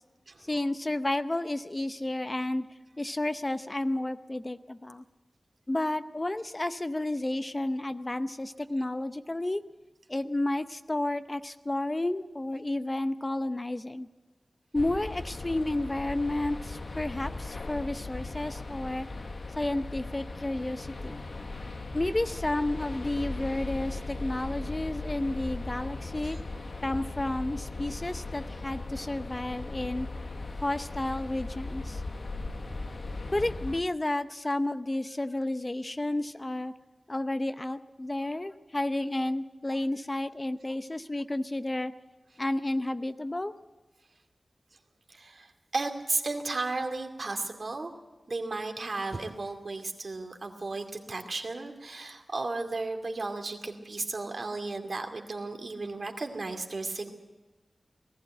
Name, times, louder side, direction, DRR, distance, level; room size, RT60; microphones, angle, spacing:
voice 1, 0.4-2.6 3.0-5.0 5.7-9.6 10.1-14.1 14.7-19.1 19.6-21.2 21.9-26.4 26.8-30.1 30.6-32.0 33.3-36.7 37.1-41.9 42.4-43.5, left 1 dB, 30° left, 11 dB, 0.7 m, -31 dB
sound 1, 14.7-33.8, left 3 dB, 65° left, 1.3 m, -38 dB
voice 2, 45.1-47.9 48.3-57.1, right 3 dB, 60° right, 4 dB, 2.4 m, -34 dB
19.5 x 14.5 x 9.1 m, 1.2 s
wide cardioid pair, 75°, 0 cm